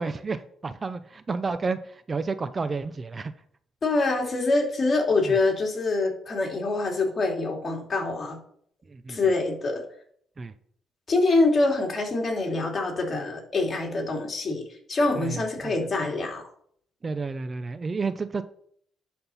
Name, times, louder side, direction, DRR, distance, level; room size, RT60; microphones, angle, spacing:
voice 1, 0.0-3.3 5.3-5.4 8.9-9.2 10.4-10.5 15.2-15.9 17.0-18.4, right 4 dB, 30° right, 12 dB, 0.6 m, -31 dB
voice 2, 3.8-8.4 9.1-9.8 11.1-14.6 14.9-16.4, left 3 dB, 40° left, 1 dB, 2.7 m, -25 dB
11.0 x 4.4 x 5.6 m, 0.63 s
cardioid pair, 90°, 0 cm